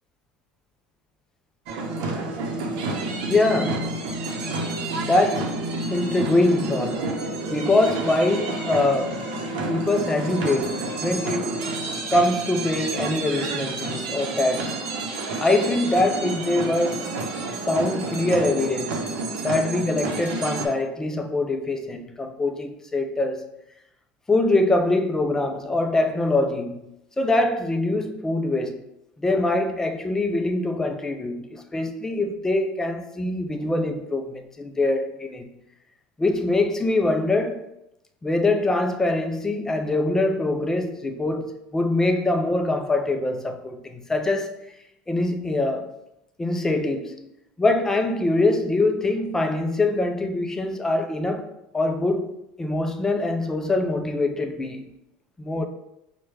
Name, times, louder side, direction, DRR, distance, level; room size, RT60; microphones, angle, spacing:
sound 1, 1.7-20.7, right 3 dB, 75° right, 0.7 m, -29 dB
voice 1, 3.3-4.0 5.0-5.6 5.9-7.2 7.5-9.2 9.7-11.7 12.1-14.8 15.4-17.2 17.7-23.4 24.3-26.8 27.2-28.8 29.2-35.5 36.2-37.6 38.2-44.5 45.1-45.9 46.4-47.3 47.6-51.5 51.7-52.3 52.6-54.9 55.4-55.7, left 2 dB, 10° left, 0.3 m, -23 dB
4.6 x 2.2 x 3.1 m
supercardioid pair, 130°, 4 cm